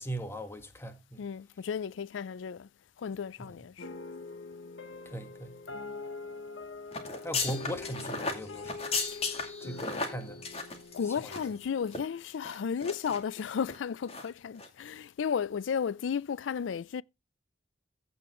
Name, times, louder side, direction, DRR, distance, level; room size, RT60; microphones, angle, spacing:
voice 1, 0.0-1.3 3.4-3.6 5.0-5.6 7.2-8.7 9.6-10.4 11.2-11.5, right 1 dB, 15° left, 1.6 m, -39 dB
voice 2, 1.2-2.7 3.0-3.9 9.1-9.4 10.9-17.0, left 7 dB, 90° left, 0.4 m, -34 dB
sound 1, 3.8-12.3, left 3 dB, 70° left, 1.2 m, -44 dB
sound 2, 6.9-11.6 11.9-12.0 12.4-13.2 13.6-13.8 14.1-14.3 14.6-14.7, left 4 dB, 35° left, 2.3 m, -35 dB
15.0 x 5.3 x 3.1 m
head